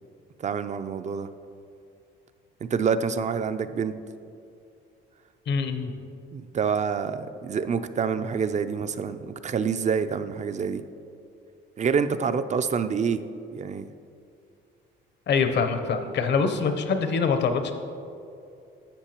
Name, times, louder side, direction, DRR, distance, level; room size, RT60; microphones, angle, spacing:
voice 1, 0.4-1.3 2.6-3.9 6.3-10.8 11.8-13.2 13.5-13.9, right 6 dB, 35° right, 11 dB, 0.4 m, -27 dB
voice 2, 5.5-5.9 15.3-17.7, left 5 dB, 60° left, 7 dB, 0.8 m, -24 dB
11.5 x 7.1 x 3.0 m, 2.5 s
cardioid pair, 90°, 20 cm